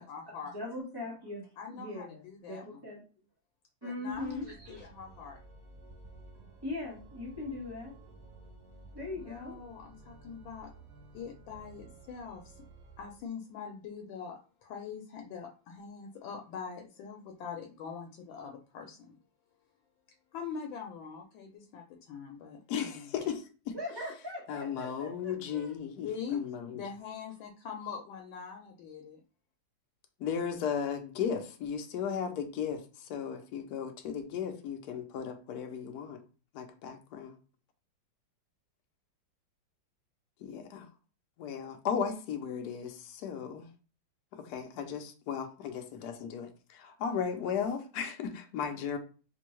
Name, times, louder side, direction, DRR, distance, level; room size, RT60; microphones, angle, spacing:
voice 1, 0.0-0.5 1.6-2.8 3.8-5.4 9.1-10.7 11.1-12.6 13.0-19.2 20.3-23.0 26.0-26.4 26.7-29.2, left 6 dB, 90° left, 1.4 m, -43 dB
voice 2, 0.5-3.0 3.8-4.9 6.6-7.9 8.9-9.6 23.7-25.7, left 2 dB, 20° right, 0.8 m, -40 dB
Organ, 4.1-13.3, right 3 dB, 65° right, 0.9 m, -53 dB
voice 3, 22.7-23.8 24.5-26.8 30.2-36.2 36.5-37.4 40.4-40.9 41.4-43.7 44.3-49.0, left 7 dB, 65° left, 1.1 m, -36 dB
4.3 x 2.2 x 3.1 m
omnidirectional pair, 2.1 m